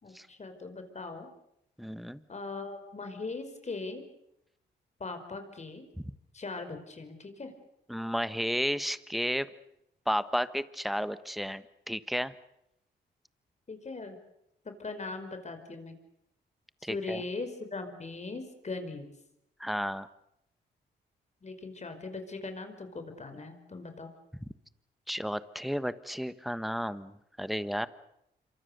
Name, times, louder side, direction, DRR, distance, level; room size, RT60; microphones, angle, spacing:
voice 1, 0.0-1.3 2.3-4.0 5.0-5.8 6.3-7.5 13.7-14.2 14.6-16.0 16.8-19.1 21.4-24.1, left 3 dB, 40° left, 7 dB, 5.1 m, -40 dB
voice 2, 1.8-2.2 6.0-6.1 7.9-9.5 10.1-12.3 16.8-17.2 19.6-20.1 25.1-27.9, equal, ahead, 13 dB, 1.3 m, -32 dB
27.0 x 24.5 x 6.9 m, 0.80 s
cardioid pair, 75°, 19 cm